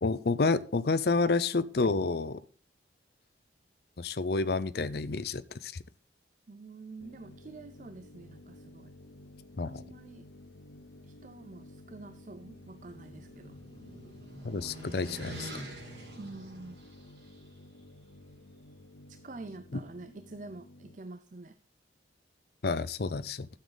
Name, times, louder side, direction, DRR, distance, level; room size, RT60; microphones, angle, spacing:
voice 1, 0.0-2.4 4.0-5.7 9.6-9.9 14.4-15.5 19.7-19.8 22.6-23.5, left 3 dB, 55° left, 14 dB, 0.6 m, -29 dB
voice 2, 6.5-8.9 9.6-10.2 11.0-13.6 16.2-16.8 19.1-21.6, right 2 dB, 40° right, 10 dB, 0.6 m, -47 dB
sound 1, 7.0-21.0, left 1 dB, 85° left, 0.8 m, -53 dB
sound 2, 12.2-17.4, right 1 dB, 75° right, 4.4 m, -46 dB
sound 3, 14.3-16.5, equal, 20° left, 3.1 m, -59 dB
12.5 x 7.3 x 3.9 m, 0.41 s
head